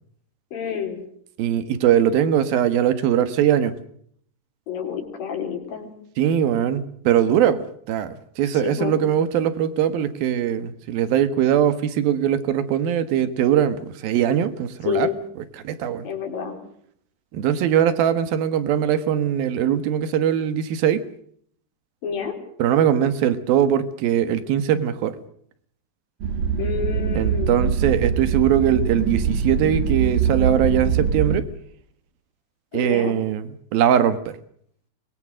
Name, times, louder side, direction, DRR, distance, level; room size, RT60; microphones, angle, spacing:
voice 1, 0.5-1.0 4.7-5.9 8.6-9.0 14.9-15.2 16.0-16.6 22.0-22.4 26.6-27.8 32.7-33.1, left 7 dB, 75° left, 3 dB, 5.6 m, -28 dB
voice 2, 1.4-3.7 6.2-15.1 15.6-16.1 17.3-21.0 22.6-25.2 27.1-31.5 32.7-34.4, right 10 dB, 90° right, 13 dB, 3.3 m, -21 dB
sound 1, 26.2-31.4, right 6 dB, 65° right, 3.2 m, -23 dB
23.0 x 21.5 x 6.3 m, 0.65 s
omnidirectional pair, 4.1 m